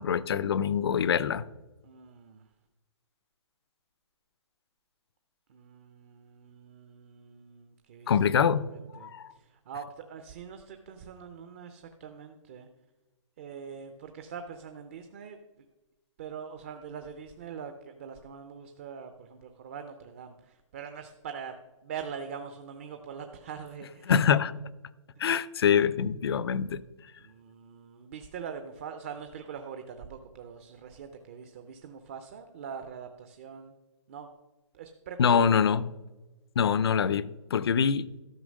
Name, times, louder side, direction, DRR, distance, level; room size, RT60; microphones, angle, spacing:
voice 1, 0.0-1.4 8.1-8.7 9.0-9.3 24.1-24.5 25.2-26.8 35.2-35.9 36.6-38.1, left 7 dB, 50° left, 0.5 m, -24 dB
voice 2, 1.8-2.4 5.5-12.7 13.4-15.4 16.2-21.5 21.8-24.1 27.2-33.7 34.1-34.3 34.7-35.8, right 7 dB, 25° right, 0.5 m, -43 dB
12.5 x 5.7 x 6.3 m
hypercardioid pair, 170°, 17 cm